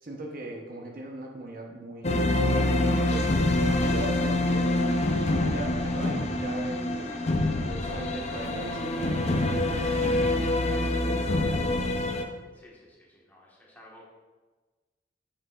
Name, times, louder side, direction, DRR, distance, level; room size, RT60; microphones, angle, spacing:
voice 1, 0.0-3.3 3.6-4.9 5.2-7.2 7.7-10.5 11.0-12.1, right 1 dB, 55° right, 1 dB, 0.7 m, -40 dB
sound 1, 2.0-12.2, left 1 dB, 40° left, 0.5 m, -26 dB
voice 2, 12.5-14.0, equal, 10° left, -4 dB, 1.3 m, -54 dB
7.8 x 5.8 x 2.3 m, 1.3 s
head